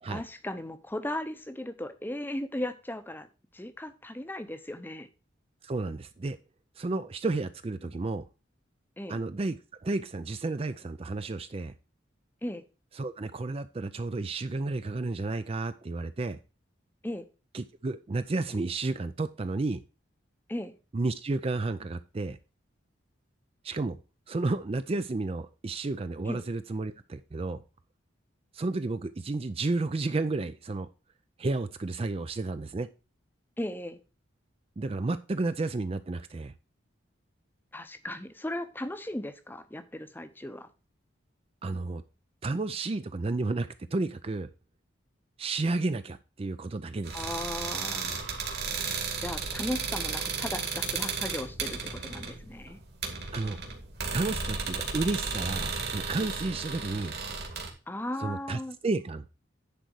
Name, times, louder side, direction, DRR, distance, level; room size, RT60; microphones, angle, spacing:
voice 1, 0.1-3.3 3.5-5.1 9.0-9.2 12.4-12.6 17.0-17.3 20.5-20.7 26.3-26.4 33.6-34.0 37.7-40.7 47.1-48.3 49.2-52.8 57.9-58.8, left 1 dB, 10° left, 0.7 m, -36 dB
voice 2, 5.6-6.4 6.8-8.2 9.1-11.7 13.0-16.4 17.5-19.8 20.9-22.4 23.6-24.0 24.3-27.6 28.5-30.9 31.4-32.9 34.8-36.5 41.6-42.0 42.4-44.5 45.4-47.2 53.3-53.6 54.1-57.1 58.2-59.3, right 3 dB, 30° right, 0.4 m, -32 dB
sound 1, 47.0-57.7, right 5 dB, 55° right, 2.3 m, -34 dB
10.5 x 4.1 x 6.2 m
head